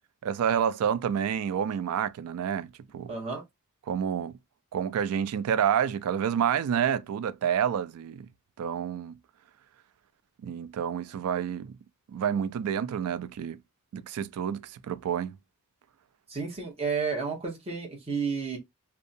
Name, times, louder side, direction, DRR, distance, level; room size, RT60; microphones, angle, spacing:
voice 1, 0.2-2.7 2.9-3.1 3.9-4.4 4.7-8.3 8.6-9.1 10.4-11.7 12.1-13.6 13.9-15.4, right 8 dB, 75° right, 0.3 m, -28 dB
voice 2, 3.1-3.4 16.3-18.6, right 5 dB, 25° right, 1.0 m, -31 dB
2.6 x 2.2 x 2.5 m
head